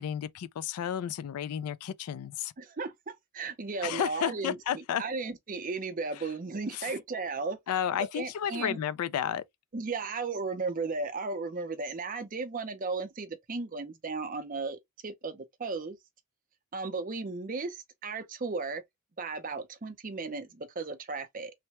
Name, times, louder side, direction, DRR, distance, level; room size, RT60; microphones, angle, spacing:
voice 1, 0.0-2.5 3.8-5.0 6.7-6.9 7.7-9.4, left 9 dB, 80° left, 0.3 m, -32 dB
voice 2, 2.6-7.8 8.1-8.8 9.7-16.0 16.7-18.8 19.2-21.5, right 4 dB, 35° right, 0.5 m, -35 dB
3.2 x 2.1 x 2.8 m
head